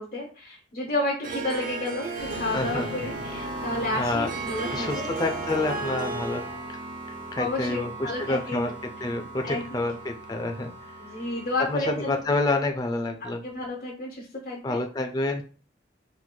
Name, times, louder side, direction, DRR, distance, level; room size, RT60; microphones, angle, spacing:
voice 1, 0.0-5.0 7.4-8.8 9.4-9.9 11.0-12.2 13.4-14.8, left 2 dB, 50° left, -2 dB, 0.7 m, -31 dB
Harp, 1.2-6.7, right 3 dB, 45° right, 0.4 m, -35 dB
sound 1, 2.2-12.2, right 2 dB, 25° right, 1.2 m, -38 dB
voice 2, 2.5-3.1 3.5-3.6 3.9-4.3 4.7-6.5 7.3-10.7 11.7-13.4 14.6-15.4, left 2 dB, 20° left, 4 dB, 0.4 m, -28 dB
4.5 x 2.6 x 2.2 m, 0.38 s
head